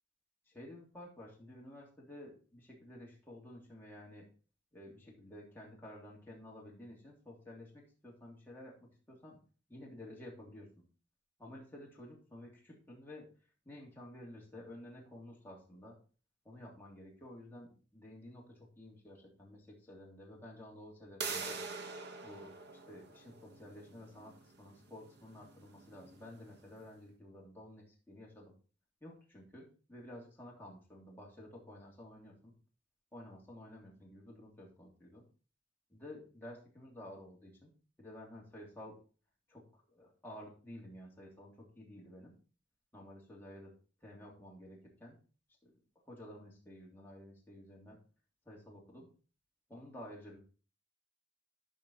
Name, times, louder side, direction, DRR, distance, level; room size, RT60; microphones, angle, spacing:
voice 1, 0.5-4.2 4.7-8.7 9.1-9.4 9.7-10.8 11.4-13.3 13.6-16.0 16.4-21.6 22.2-22.5 22.9-28.5 29.0-32.5 33.1-35.2 35.9-37.7 38.0-39.0 39.5-42.3 42.9-43.7 44.0-45.2 45.6-45.7 46.0-48.0 48.4-49.1 49.7-50.4, left 1 dB, 10° left, -4 dB, 3.0 m, -52 dB
sound 1, 21.2-26.8, right 4 dB, 60° right, 1.4 m, -45 dB
12.5 x 5.2 x 4.3 m, 0.38 s
head